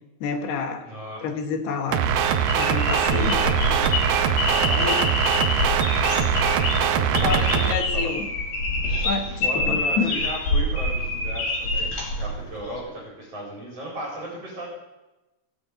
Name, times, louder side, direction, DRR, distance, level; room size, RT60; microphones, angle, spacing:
voice 1, 0.2-0.9 1.2-2.1 2.5-3.4 4.8-5.0 6.6-6.7 7.2-8.3 9.0-10.2, left 5 dB, 80° left, 5 dB, 3.6 m, -28 dB
voice 2, 0.8-1.3 1.9-2.4 3.1-3.9 4.4-5.1 6.8-7.4 7.7-8.1 9.3-14.7, right 1 dB, 40° right, -3 dB, 5.1 m, -36 dB
sound 1, 1.9-12.8, left 2 dB, 55° left, 4.7 m, -27 dB
sound 2, 1.9-7.7, right 8 dB, 75° right, 2.7 m, -22 dB
17.0 x 8.8 x 8.9 m, 1.0 s
omnidirectional pair, 4.6 m